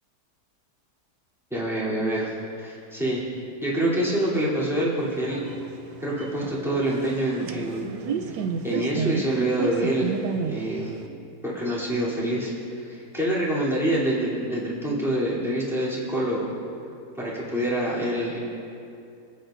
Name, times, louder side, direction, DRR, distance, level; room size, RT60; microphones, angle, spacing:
voice 1, 1.5-3.2 3.6-5.5 6.0-7.9 8.2-10.1 10.4-11.0 11.4-16.5 17.2-18.4, right 1 dB, ahead, -8 dB, 3.0 m, -26 dB
sound 1, 5.0-11.1, right 6 dB, 90° right, 1.3 m, -32 dB
25.5 x 9.1 x 2.6 m, 2.6 s
omnidirectional pair, 1.7 m